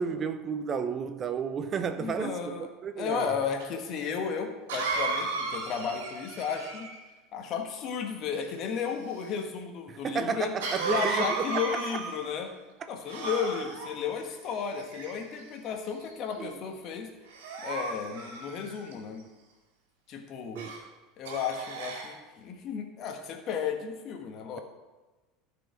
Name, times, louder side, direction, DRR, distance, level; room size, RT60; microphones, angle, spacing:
voice 1, 0.0-3.3 9.9-12.0 15.8-15.9 16.4-16.5 20.5-20.7, right 6 dB, 35° right, 0.6 m, -32 dB
voice 2, 2.0-2.7 3.0-6.9 7.3-10.5 10.9-12.5 12.9-17.1 17.6-19.2 20.1-20.6 21.2-24.6, left 7 dB, 45° left, 1.5 m, -34 dB
Cough, 3.6-3.7 4.7-7.1 10.6-12.4 13.1-13.9 14.7-15.4 16.0-16.3 17.3-18.9 20.5-20.8 21.2-22.1, right 4 dB, 65° right, 2.3 m, -34 dB
14.0 x 5.1 x 4.9 m
figure-of-eight pair, 75°, 0 cm